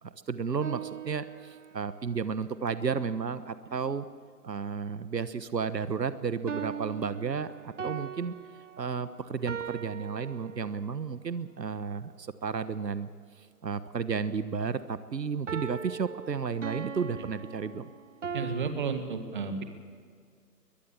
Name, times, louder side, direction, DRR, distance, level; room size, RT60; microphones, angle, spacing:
voice 1, 0.0-4.0 4.4-8.3 8.8-13.1 13.6-17.9, right 6 dB, 80° right, 13 dB, 1.3 m, -33 dB
sound 1, 0.6-2.0 6.5-11.0 15.5-18.7, right 7 dB, 50° right, 1.0 m, -40 dB
voice 2, 18.3-19.6, right 5 dB, 30° right, 7 dB, 1.9 m, -32 dB
22.5 x 20.5 x 7.3 m, 2.1 s
figure-of-eight pair, 160°, 49 cm